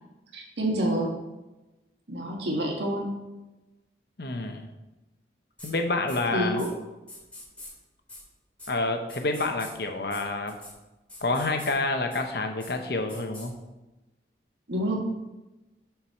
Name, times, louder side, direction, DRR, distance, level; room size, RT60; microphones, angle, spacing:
voice 1, 0.3-1.1 2.1-3.1 6.3-6.7 14.7-15.0, right 1 dB, 75° right, -1 dB, 1.8 m, -27 dB
voice 2, 4.2-4.7 5.6-6.6 8.7-10.6 11.2-13.6, left 2 dB, 60° left, 5 dB, 0.9 m, -28 dB
sound 1, 5.6-5.7 6.1-6.2 6.6-6.7 7.1-7.7 8.1-8.2 8.6-8.7 9.1-9.7 10.1-10.2 10.5-10.7 11.1-11.7 12.1-12.2 12.6-12.7 13.1-13.5, left 1 dB, 10° left, 2.5 m, -44 dB
7.4 x 4.7 x 5.6 m, 1.0 s
head